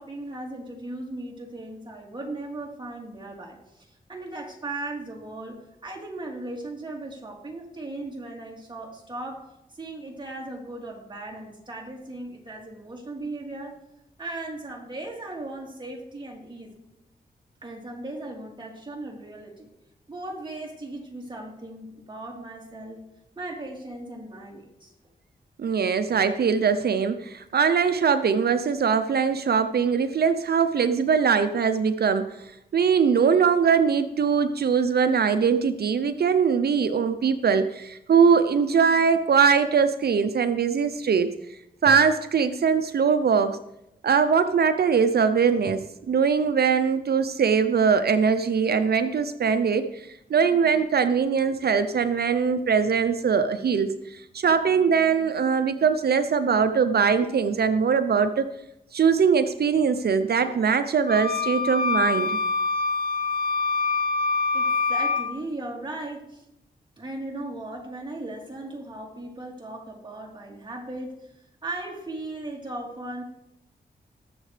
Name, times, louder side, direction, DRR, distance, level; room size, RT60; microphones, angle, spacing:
voice 1, 0.0-9.4 9.7-13.8 14.2-16.7 17.6-19.7 20.1-23.0 23.4-24.9 64.5-66.5 67.0-71.3 71.6-73.2, right 2 dB, 25° right, -2 dB, 3.7 m, -37 dB
voice 2, 25.6-41.3 41.8-43.6 44.0-58.5 58.9-62.4, right 6 dB, 65° right, 10 dB, 0.7 m, -22 dB
sound 1, 61.1-65.2, left 4 dB, 60° left, 2.5 m, -25 dB
19.5 x 7.4 x 3.4 m, 0.84 s
cardioid pair, 55°, 17 cm